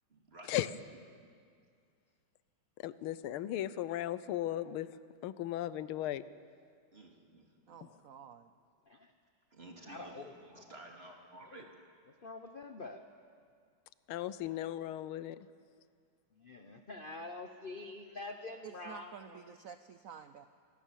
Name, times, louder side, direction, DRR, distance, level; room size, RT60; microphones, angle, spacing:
voice 1, 0.1-0.6 6.9-7.8 9.5-11.7, right 2 dB, 30° right, 1 dB, 2.8 m, -53 dB
voice 2, 2.8-4.9 5.2-6.2 14.1-15.4, left 13 dB, 90° left, 16 dB, 1.6 m, -36 dB
voice 3, 7.7-8.5 18.6-20.5, right 7 dB, 75° right, 10 dB, 0.7 m, -50 dB
voice 4, 9.9-10.6 11.5-11.6 12.2-13.0 16.4-19.5, left 2 dB, 45° left, 6 dB, 0.7 m, -46 dB
25.5 x 18.5 x 7.4 m, 2.2 s
omnidirectional pair, 2.3 m